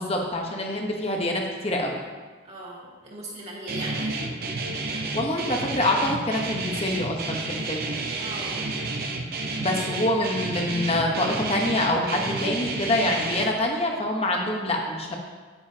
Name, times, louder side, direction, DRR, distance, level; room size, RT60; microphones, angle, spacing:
voice 1, 0.0-2.0 4.9-8.0 9.6-15.2, left 1 dB, 30° left, 1 dB, 1.1 m, -26 dB
voice 2, 2.4-4.3 8.2-8.8, right 1 dB, 30° right, -5 dB, 2.4 m, -38 dB
Guitar, 3.7-13.5, right 3 dB, 50° right, 0.8 m, -30 dB
10.0 x 9.4 x 2.9 m, 1.4 s
head